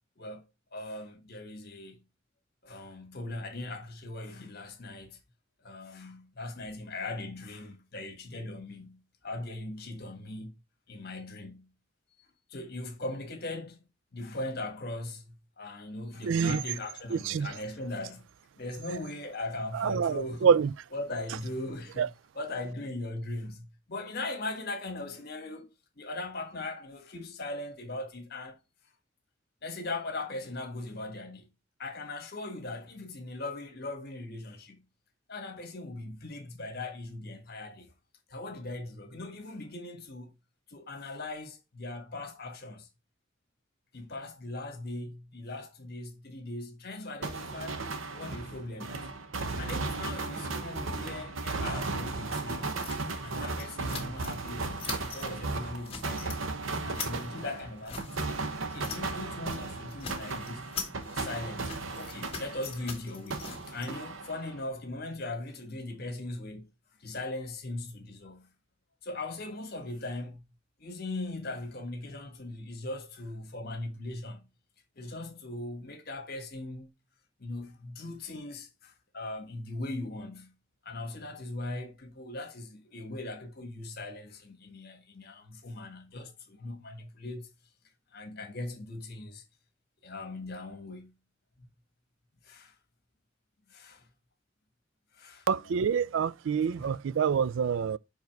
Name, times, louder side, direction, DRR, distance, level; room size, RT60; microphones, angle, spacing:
voice 1, 0.7-2.0 2.6-5.2 5.6-10.5 10.9-11.7 12.2-13.8 14.1-18.3 18.6-20.5 20.9-25.7 26.0-28.6 29.6-31.5 31.8-34.8 35.3-37.9 38.3-40.3 40.7-42.9 43.9-49.1 49.6-52.8 53.2-56.4 56.8-58.3 58.6-66.7 67.0-68.5 69.0-70.4 70.8-74.5 75.0-76.9 77.4-80.5 80.8-87.5 88.1-89.4 90.0-91.1 91.6-91.7 92.4-92.7 93.7-94.1 95.1-95.5 96.8-96.9, left 2 dB, 55° left, 1.5 m, -39 dB
voice 2, 16.2-16.6 17.1-17.5 19.7-20.7 22.0-22.1 95.5-98.0, right 7 dB, 70° right, 0.3 m, -26 dB
sound 1, 47.2-63.0 63.3-64.7, right 3 dB, 90° right, 1.0 m, -36 dB
sound 2, 52.8-54.5 54.8-55.3 55.6-56.4 56.7-59.2 59.5-59.6 59.9-63.9, left 5 dB, 30° left, 1.7 m, -42 dB
5.4 x 4.8 x 4.5 m
head